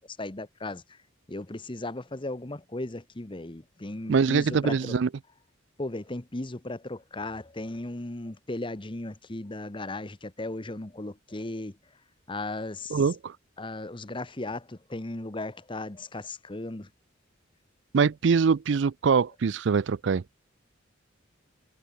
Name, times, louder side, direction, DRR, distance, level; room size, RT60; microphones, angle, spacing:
voice 1, 0.2-1.0 1.3-5.0 5.8-11.8 12.3-13.0 13.6-16.9, left 2 dB, 25° left, 1.1 m, -36 dB
voice 2, 4.1-5.1 12.9-13.3 17.9-20.2, right 5 dB, 65° right, 0.4 m, -23 dB
head